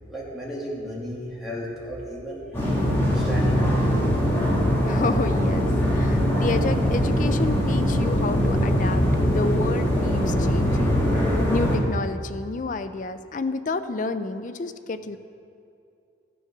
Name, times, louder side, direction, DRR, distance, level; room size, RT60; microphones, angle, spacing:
voice 1, 0.1-4.1, equal, ahead, -7 dB, 2.3 m, -35 dB
sound 1, 2.5-11.8, equal, 15° left, 1.9 m, -22 dB
voice 2, 4.9-15.2, left 3 dB, 45° left, 10 dB, 0.5 m, -30 dB
14.0 x 7.0 x 5.9 m, 2.5 s
head